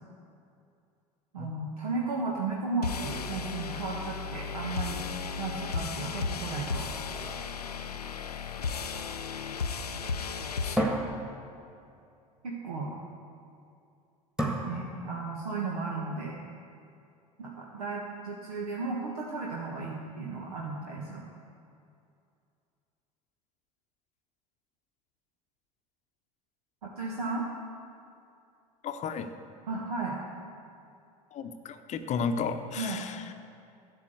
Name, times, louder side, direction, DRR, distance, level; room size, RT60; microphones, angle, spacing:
voice 1, 1.3-5.0 5.4-6.9 12.4-12.9 14.6-16.4 17.4-21.2 26.8-27.5 29.7-30.2 32.8-33.0, right 3 dB, 75° right, -3 dB, 1.5 m, -34 dB
sound 1, 2.8-10.8, left 5 dB, 85° left, 0.5 m, -35 dB
sound 2, 7.1-8.7 10.8-12.1 14.4-15.5, right 1 dB, 5° right, 1.7 m, -34 dB
voice 2, 28.8-29.3 31.3-33.3, left 5 dB, 35° left, 8 dB, 0.8 m, -33 dB
12.5 x 7.1 x 7.9 m, 2.5 s
figure-of-eight pair, 70°, 19 cm